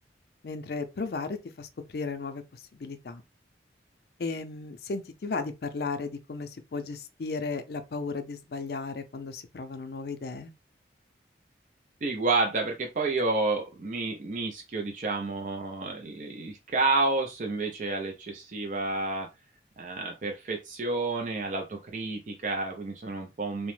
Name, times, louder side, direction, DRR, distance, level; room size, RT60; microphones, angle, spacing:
voice 1, 0.4-3.2 4.2-10.5, left 4 dB, 60° left, 0.4 m, -35 dB
voice 2, 12.0-19.3 19.8-23.7, right 3 dB, 45° right, 0.4 m, -30 dB
2.9 x 2.0 x 3.1 m
head